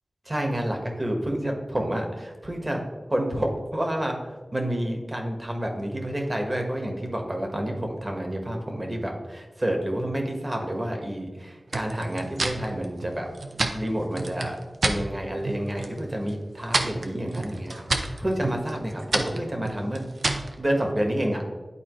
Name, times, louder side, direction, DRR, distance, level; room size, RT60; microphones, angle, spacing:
voice 1, 0.2-2.8 3.1-13.3 13.7-14.6 14.8-20.0 20.6-21.4, right 1 dB, 30° right, 2 dB, 1.3 m, -29 dB
sound 1, 11.7-15.0 15.4-16.0 16.3-20.5, right 2 dB, 80° right, 0.6 m, -29 dB
11.0 x 4.2 x 3.1 m, 1.3 s
wide cardioid pair, 70°, 0 cm